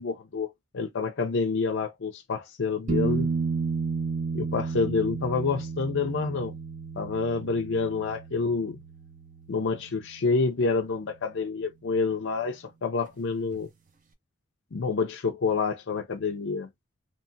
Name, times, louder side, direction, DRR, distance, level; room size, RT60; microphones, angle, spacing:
voice 1, 0.0-3.3 4.3-6.6 7.0-8.8 9.5-13.7 14.7-16.7, left 4 dB, 60° left, 0.5 m, -28 dB
sound 1, 2.9-10.5 13.5-13.6, right 4 dB, 35° right, 0.5 m, -32 dB
3.0 x 2.2 x 2.6 m
head